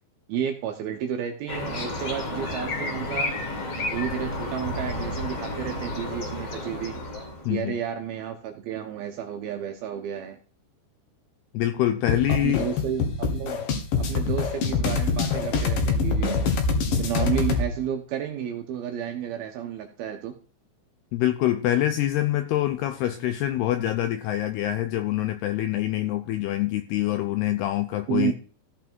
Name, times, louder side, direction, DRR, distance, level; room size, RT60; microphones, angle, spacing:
voice 1, 0.3-3.3 3.9-7.0 7.5-10.4 12.3-13.7 14.0-16.6 17.0-20.4 28.1-28.3, right 9 dB, 75° right, 5 dB, 2.4 m, -31 dB
sound 1, 1.5-7.5, left 2 dB, 40° left, 2.9 m, -31 dB
voice 2, 11.5-12.7 21.1-28.3, left 13 dB, 80° left, 9 dB, 2.3 m, -25 dB
sound 2, 12.1-17.7, left 4 dB, 60° left, 2.6 m, -25 dB
14.5 x 5.9 x 4.5 m, 0.40 s
omnidirectional pair, 5.4 m